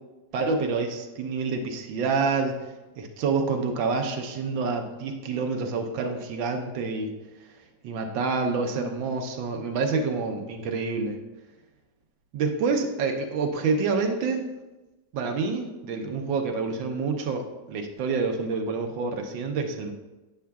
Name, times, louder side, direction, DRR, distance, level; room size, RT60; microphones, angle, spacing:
voice 1, 0.3-2.6 3.0-7.1 7.8-11.2 12.3-14.5 15.1-19.9, right 4 dB, 85° right, 3 dB, 1.5 m, -27 dB
8.4 x 7.3 x 2.3 m, 1.1 s
omnidirectional pair, 2.0 m